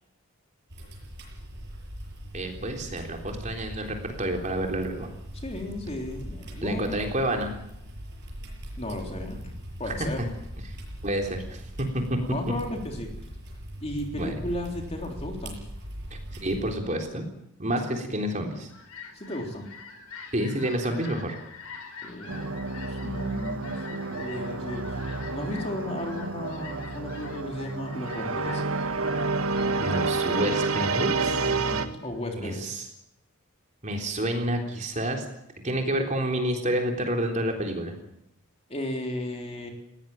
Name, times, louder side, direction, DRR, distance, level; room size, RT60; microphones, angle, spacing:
sound 1, 0.7-16.7, equal, 50° right, 7.4 m, -40 dB
voice 1, 2.3-5.1 6.6-7.5 9.9-10.1 10.7-10.8 11.0-12.2 14.1-14.3 16.1-17.2 17.6-18.7 20.3-21.4 29.8-31.8 32.4-32.8 33.8-35.3 35.6-38.0, right 1 dB, 35° right, 3 dB, 3.7 m, -29 dB
voice 2, 5.3-7.0 8.8-9.4 9.8-10.3 12.2-13.1 13.8-15.6 19.1-19.7 22.0-22.6 22.9-28.6 31.5-32.7 38.7-39.7, left 1 dB, 30° left, 2 dB, 3.6 m, -35 dB
Fowl, 18.3-32.3, left 5 dB, 85° left, 5.5 m, -46 dB
sound 2, 22.3-31.9, right 3 dB, 70° right, 1.6 m, -29 dB
20.5 x 17.5 x 8.9 m, 0.80 s
head